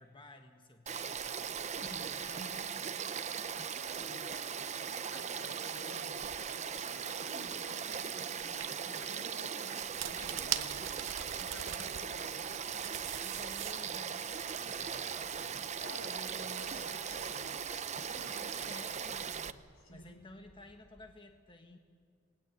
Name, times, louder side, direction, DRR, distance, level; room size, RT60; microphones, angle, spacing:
voice 1, 0.0-2.6 3.2-3.7 11.7-14.4 14.8-15.4 18.5-21.8, left 2 dB, 25° left, 4 dB, 1.4 m, -54 dB
Frog / Stream, 0.9-19.5, right 7 dB, 35° right, 0.7 m, -39 dB
voice 2, 3.4-4.3 4.6-4.8 5.1-10.9 11.3-12.2 15.8-18.8 19.8-20.2, left 1 dB, 80° left, 3 dB, 5.5 m, -52 dB
sound 1, 7.9-8.0 8.4-8.7 9.8-12.0 12.4-14.0, right 11 dB, 65° right, 0.9 m, -40 dB
sound 2, 9.8-21.1, equal, ahead, 7.8 m, -64 dB
28.0 x 20.0 x 8.3 m, 2.1 s
head